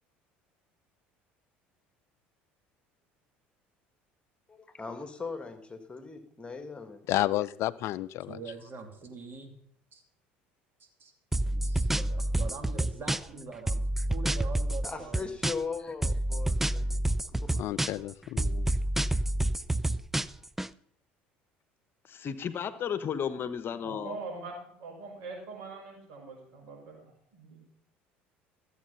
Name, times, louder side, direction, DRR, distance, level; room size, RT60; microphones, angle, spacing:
voice 1, 4.5-7.0 14.8-17.0 17.3-17.6, left 4 dB, 20° left, 8 dB, 1.9 m, -39 dB
voice 2, 7.1-8.4 17.6-18.7, left 15 dB, 60° left, 18 dB, 0.4 m, -31 dB
voice 3, 8.3-9.6 9.9-10.0 10.8-11.1 11.4-15.4, right 4 dB, 40° right, 5 dB, 2.8 m, -44 dB
sound 1, 11.3-13.4 13.7-15.8 16.0-18.1 18.4-20.7, right 1 dB, 5° right, 0.4 m, -28 dB
voice 4, 22.0-24.1, left 8 dB, 45° left, 13 dB, 1.0 m, -33 dB
voice 5, 23.8-27.6, right 3 dB, 70° right, 0 dB, 5.7 m, -43 dB
14.0 x 8.3 x 5.6 m, 0.66 s
hypercardioid pair, 70°, 5 cm